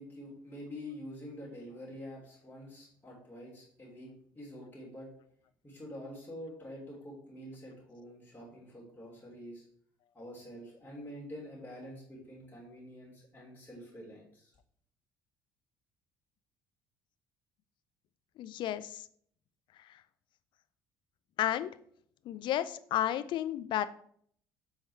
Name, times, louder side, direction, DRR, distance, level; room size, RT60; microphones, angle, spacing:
voice 1, 0.0-4.1 4.3-5.1 5.6-9.6 10.1-14.5, equal, 15° left, -5 dB, 3.4 m, -47 dB
voice 2, 18.4-19.0 21.4-21.7 22.3-23.9, left 11 dB, 45° left, 14 dB, 0.5 m, -32 dB
7.5 x 4.7 x 4.4 m, 0.62 s
figure-of-eight pair, 55°, 11 cm